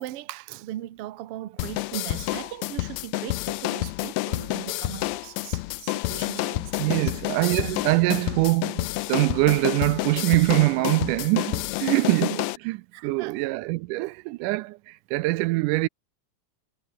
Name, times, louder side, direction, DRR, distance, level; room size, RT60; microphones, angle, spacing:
voice 1, 0.0-7.4 12.9-13.4, right 13 dB, 60° right, 1.7 m, -39 dB
sound 1, 1.6-12.6, left 19 dB, 85° left, 1.5 m, -29 dB
voice 2, 6.8-15.9, right 21 dB, 85° right, 2.0 m, -24 dB
omnidirectional pair, 3.7 m